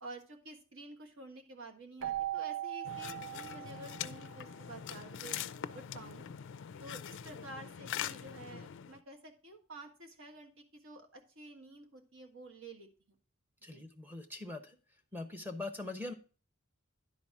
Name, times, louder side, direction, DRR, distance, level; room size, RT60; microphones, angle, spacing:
voice 1, 0.0-5.4 5.7-6.3 6.8-13.1 13.6-13.8, right 2 dB, 65° right, 3 dB, 1.6 m, -50 dB
Keyboard (musical), 2.0-4.6, right 13 dB, 85° right, 0.6 m, -40 dB
sound 1, 2.8-9.0, left 9 dB, 60° left, 0.4 m, -43 dB
voice 2, 13.6-14.8 15.1-16.1, left 2 dB, 10° right, 5 dB, 0.9 m, -42 dB
10.5 x 4.1 x 5.9 m, 0.36 s
head